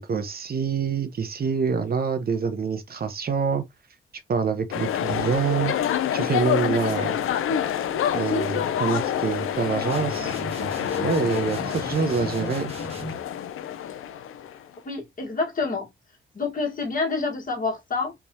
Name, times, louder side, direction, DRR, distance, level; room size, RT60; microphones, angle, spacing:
voice 1, 0.0-3.6 4.3-5.7 6.1-7.2 8.1-10.3 11.0-12.7, right 5 dB, 45° right, 0.9 m, -26 dB
sound 1, 4.7-14.6, left 9 dB, 85° left, 0.5 m, -27 dB
sound 2, 9.9-13.3, right 2 dB, 30° right, 1.4 m, -37 dB
voice 2, 14.8-15.9 16.3-18.1, left 4 dB, 40° left, 1.6 m, -27 dB
3.5 x 3.0 x 2.8 m
cardioid pair, 85°, 21 cm